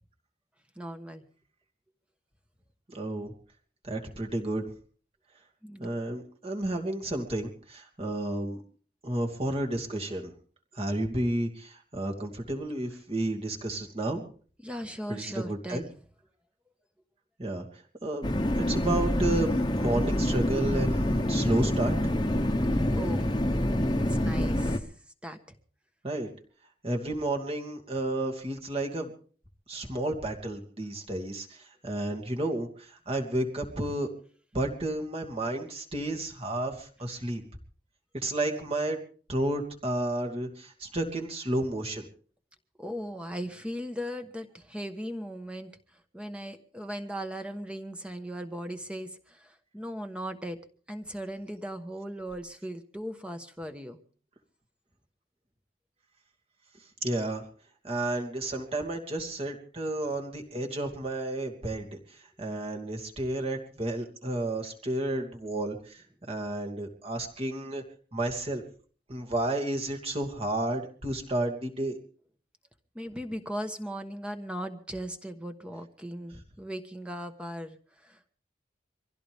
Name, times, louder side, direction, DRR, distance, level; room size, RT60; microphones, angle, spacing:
voice 1, 0.8-1.2 5.6-5.9 14.6-15.9 22.9-23.3 23.9-24.9 25.2-25.4 42.8-45.8 46.1-50.6 50.9-54.0 72.9-77.8 78.0-78.3, equal, 5° right, 7 dB, 1.3 m, -38 dB
voice 2, 2.9-3.3 3.8-4.6 5.8-8.6 9.0-10.3 10.7-14.2 15.1-15.8 17.4-17.7 18.0-18.3 18.6-22.0 26.0-26.3 26.8-29.1 29.7-34.1 34.5-37.4 38.2-39.0 39.3-42.1 57.0-57.4 57.8-61.9 62.4-66.0 66.3-67.8 68.1-68.6 69.1-72.0, right 1 dB, 35° right, 2 dB, 2.6 m, -31 dB
sound 1, 18.2-24.8, left 1 dB, 25° left, 1.2 m, -26 dB
24.0 x 16.0 x 3.6 m, 0.43 s
head